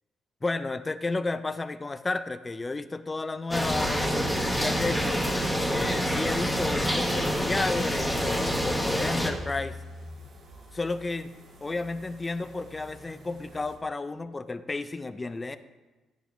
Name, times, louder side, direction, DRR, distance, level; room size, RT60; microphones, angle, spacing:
voice 1, 0.4-4.1 4.6-5.2 5.7-9.8 10.7-11.3 11.6-15.6, left 3 dB, 25° left, 12 dB, 0.4 m, -32 dB
sound 1, 3.5-9.3, equal, ahead, 1.2 m, -27 dB
sound 2, 7.9-13.8, left 2 dB, 70° right, 1.2 m, -46 dB
9.9 x 7.0 x 2.6 m, 1.2 s
cardioid pair, 90°, 0 cm